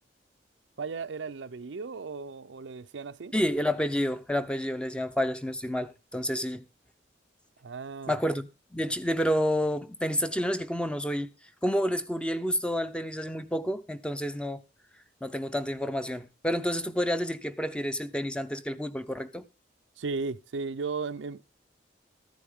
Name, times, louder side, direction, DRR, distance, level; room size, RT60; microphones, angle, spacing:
voice 1, 0.8-3.3 7.6-8.2 20.0-21.5, right 4 dB, 85° right, 0.6 m, -35 dB
voice 2, 3.3-6.6 8.1-11.3 11.6-14.6 15.2-19.4, equal, 5° left, 0.6 m, -29 dB
14.0 x 10.0 x 3.6 m
head